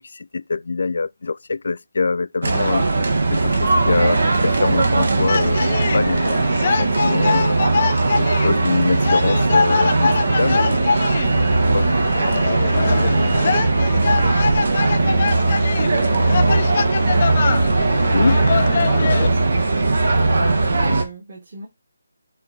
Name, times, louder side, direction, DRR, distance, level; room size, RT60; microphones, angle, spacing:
voice 1, 0.0-2.9 3.3-7.6 8.2-10.8 11.6-11.9 18.1-18.4, left 4 dB, 55° left, 0.4 m, -24 dB
sound 1, 2.4-21.0, right 3 dB, 60° right, 1.5 m, -19 dB
sound 2, 5.3-19.3, left 5 dB, 40° left, 0.8 m, -24 dB
voice 2, 12.3-20.0 20.4-21.7, right 2 dB, 40° right, 2.3 m, -35 dB
6.6 x 3.5 x 4.2 m
figure-of-eight pair, 155°, 0 cm